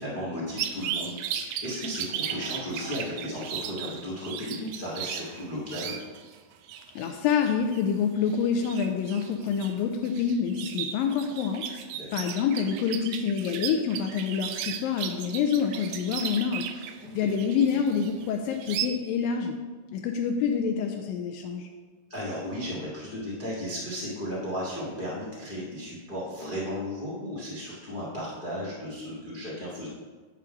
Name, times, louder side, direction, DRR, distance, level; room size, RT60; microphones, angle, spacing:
voice 1, 0.0-5.9 12.0-12.1 17.0-17.1 22.1-29.9, equal, 50° left, -6 dB, 0.6 m, -35 dB
sound 1, 0.6-6.4 6.6-18.9, right 9 dB, 85° right, 1.9 m, -36 dB
voice 2, 7.0-11.6 12.1-16.7 17.1-19.6 19.9-21.7, left 7 dB, 80° left, 4 dB, 2.1 m, -27 dB
10.5 x 3.7 x 5.6 m, 1.4 s
omnidirectional pair, 4.3 m